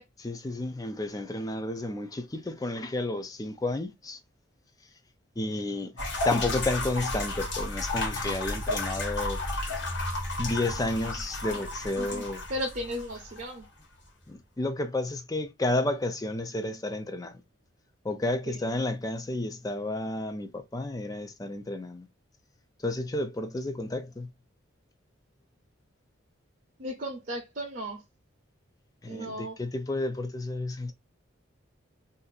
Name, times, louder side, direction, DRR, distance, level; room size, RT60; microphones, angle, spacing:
voice 1, 0.2-4.2 5.4-9.4 10.4-12.4 14.3-17.3 18.0-22.1 22.8-24.3 29.0-30.9, left 2 dB, 20° left, 0.4 m, -31 dB
sound 1, 6.0-13.5, left 2 dB, 60° left, 1.3 m, -33 dB
voice 2, 12.5-13.7 18.2-18.7 26.8-28.0 29.1-29.6, equal, 45° right, 0.7 m, -35 dB
2.6 x 2.5 x 3.9 m
head